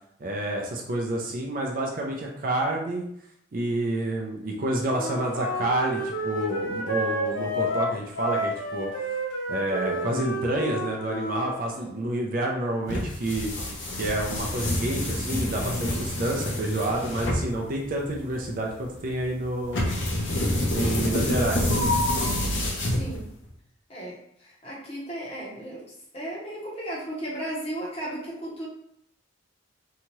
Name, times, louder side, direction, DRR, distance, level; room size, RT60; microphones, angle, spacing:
voice 1, 0.2-3.1 3.5-8.9 9.5-13.5 13.9-19.8 20.7-21.7, right 1 dB, 40° right, -1 dB, 0.4 m, -29 dB
Wind instrument woodwind instrument, 4.9-11.5, equal, 90° left, 0.8 m, -30 dB
sound 1, 12.8-23.5, left 1 dB, 60° left, 0.7 m, -28 dB
voice 2, 21.0-21.4 23.0-23.3 23.9-24.2 24.6-25.9 26.1-28.7, right 1 dB, 30° left, -4 dB, 0.8 m, -35 dB
2.8 x 2.3 x 3.0 m, 0.70 s
head